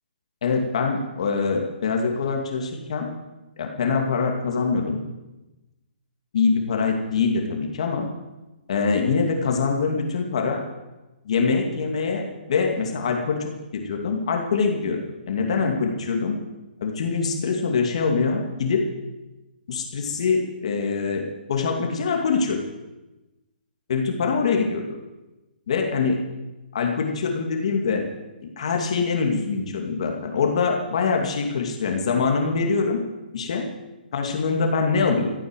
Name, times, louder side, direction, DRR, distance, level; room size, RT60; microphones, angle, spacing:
voice 1, 0.4-3.1 3.6-5.0 6.3-8.1 8.7-10.6 11.2-12.2 12.5-15.0 15.3-16.4 16.8-18.9 19.7-22.6 23.9-24.8 25.7-26.2 26.7-28.0 28.6-33.0 33.3-33.7 34.1-35.3, left 5 dB, 40° left, 2 dB, 2.5 m, -24 dB
14.0 x 11.0 x 9.2 m, 1.1 s
hypercardioid pair, 175°, 5 cm